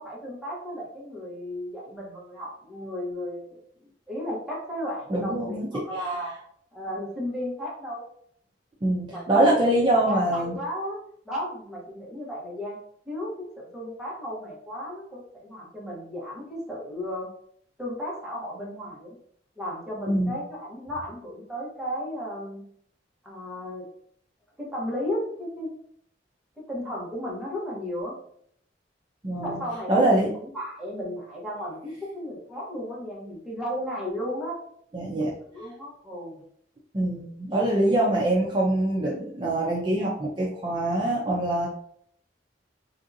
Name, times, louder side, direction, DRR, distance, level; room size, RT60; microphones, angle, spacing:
voice 1, 0.0-3.6 4.1-6.3 6.7-8.0 9.1-11.0 11.2-12.8 13.1-17.3 17.8-19.1 19.6-22.6 23.2-23.9 24.6-25.7 26.7-28.1 29.4-34.6 35.5-36.4, equal, 5° right, -5 dB, 1.0 m, -34 dB
voice 2, 5.1-5.8 8.8-10.5 20.1-20.4 29.2-29.6 29.9-30.3 34.9-35.3 36.9-41.7, right 1 dB, 25° right, -4 dB, 0.5 m, -24 dB
3.6 x 2.7 x 2.6 m, 0.66 s
head